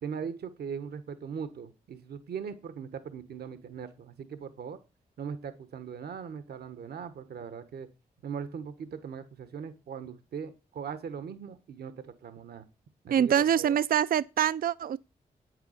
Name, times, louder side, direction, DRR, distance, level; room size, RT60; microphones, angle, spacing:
voice 1, 0.0-4.8 5.2-7.9 8.2-12.6 13.0-13.8, right 7 dB, 80° right, 1.2 m, -40 dB
voice 2, 13.1-15.0, right 9 dB, 60° right, 0.4 m, -25 dB
8.5 x 8.1 x 6.4 m
supercardioid pair, 45°, 16 cm